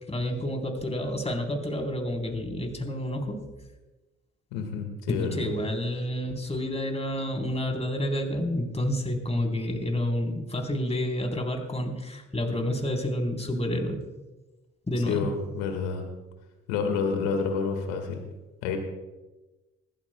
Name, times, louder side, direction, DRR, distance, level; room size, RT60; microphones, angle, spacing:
voice 1, 0.1-3.5 5.1-14.0 14.9-15.3, left 1 dB, 20° left, 2 dB, 3.9 m, -29 dB
voice 2, 4.5-5.5 15.1-16.0 16.7-18.2 18.6-18.8, left 5 dB, 80° left, 4 dB, 1.9 m, -29 dB
21.0 x 14.5 x 2.3 m, 1.1 s
hypercardioid pair, 50°, 34 cm